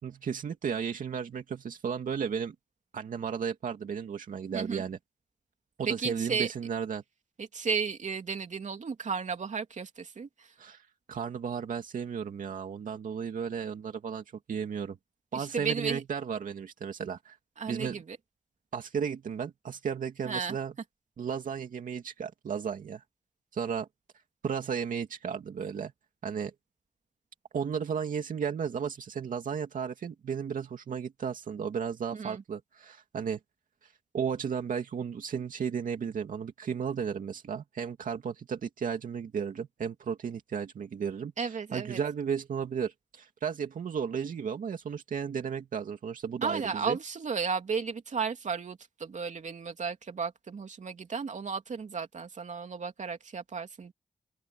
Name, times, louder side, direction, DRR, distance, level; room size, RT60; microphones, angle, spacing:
voice 1, 0.0-2.5 2.9-5.0 5.8-7.0 10.6-15.0 15.3-17.4 17.7-18.0 18.7-20.7 21.2-23.0 23.5-23.9 24.4-25.9 26.2-26.5 27.5-33.4 34.1-47.0, right 7 dB, 85° right, 2.5 m, -34 dB
voice 2, 5.9-6.5 7.4-10.5 15.3-16.0 17.6-18.2 20.2-20.6 32.1-32.4 41.4-42.0 46.4-53.9, right 5 dB, 65° right, 3.0 m, -34 dB
open air
cardioid pair, 65°, 13 cm